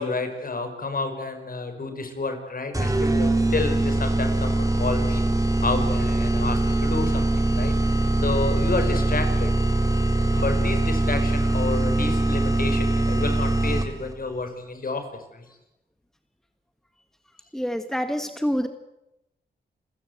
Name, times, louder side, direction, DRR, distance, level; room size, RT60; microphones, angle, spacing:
voice 1, 0.0-5.2 5.6-7.7 8.2-9.5 10.3-15.5, left 3 dB, 50° left, 7 dB, 5.1 m, -30 dB
sound 1, 2.7-14.1, right 2 dB, 20° right, 3.2 m, -22 dB
voice 2, 17.5-18.7, equal, ahead, 8 dB, 1.8 m, -26 dB
28.5 x 15.5 x 8.1 m, 0.90 s
cardioid pair, 60°, 19 cm